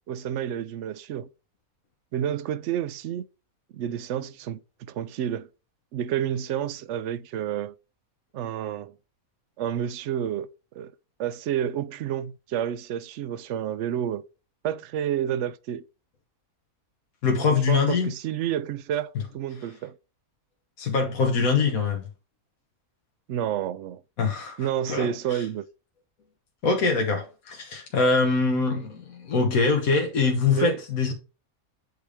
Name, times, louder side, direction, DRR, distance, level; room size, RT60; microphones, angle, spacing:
voice 1, 0.1-1.3 2.1-3.2 3.7-5.5 5.9-7.7 8.3-8.9 9.6-10.5 10.7-10.9 11.2-14.2 14.6-15.8 17.5-20.0 23.3-24.0 24.6-25.6 30.5-30.8, right 10 dB, 65° right, 0.8 m, -30 dB
voice 2, 17.2-18.1 20.8-22.0 24.2-24.6 24.9-25.4 26.6-31.1, left 4 dB, 75° left, 1.6 m, -23 dB
8.1 x 3.4 x 4.8 m
omnidirectional pair, 1.5 m